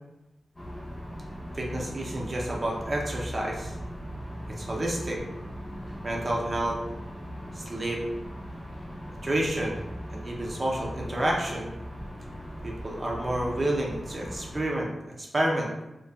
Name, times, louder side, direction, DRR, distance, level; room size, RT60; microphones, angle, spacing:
sound 1, 0.5-14.6, equal, 30° left, 0.7 m, -39 dB
voice 1, 1.5-3.7 4.6-5.2 6.0-6.8 7.5-8.0 9.2-9.8 10.1-11.7 12.6-14.9 15.2-15.7, right 1 dB, 35° right, -2 dB, 0.5 m, -29 dB
2.5 x 2.2 x 2.3 m, 0.97 s
wide cardioid pair, 120°, 0 cm